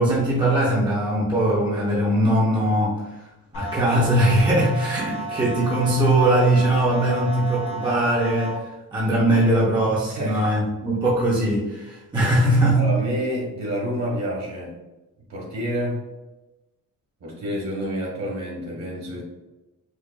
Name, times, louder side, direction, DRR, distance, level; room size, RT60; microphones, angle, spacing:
voice 1, 0.0-12.9, right 1 dB, 15° right, -6 dB, 0.7 m, -21 dB
sound 1, 3.5-8.5, right 3 dB, 40° left, 1.0 m, -32 dB
voice 2, 12.8-14.8 15.3-16.0 17.2-19.2, equal, 50° right, -2 dB, 1.4 m, -28 dB
4.9 x 2.4 x 2.3 m, 1.0 s
cardioid pair, 160°, 33 cm